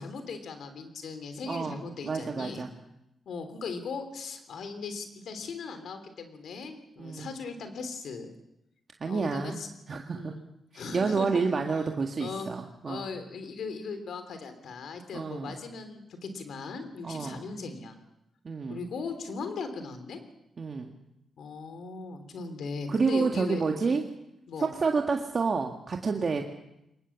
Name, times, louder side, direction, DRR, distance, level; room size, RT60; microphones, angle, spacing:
voice 1, 0.0-2.7 3.2-8.3 9.0-9.7 10.1-10.4 10.7-11.5 12.2-12.5 12.8-18.0 18.7-20.2 21.4-24.0 24.5-24.7, left 4 dB, 75° left, 8 dB, 3.3 m, -38 dB
voice 2, 1.5-2.7 7.0-7.4 9.0-9.6 9.9-10.3 10.7-13.1 15.1-15.6 17.0-17.4 18.4-18.8 20.6-20.9 22.9-24.0 24.6-26.4, right 4 dB, 50° right, 2 dB, 1.9 m, -29 dB
22.5 x 19.5 x 7.2 m, 0.86 s
supercardioid pair, 55°, 0 cm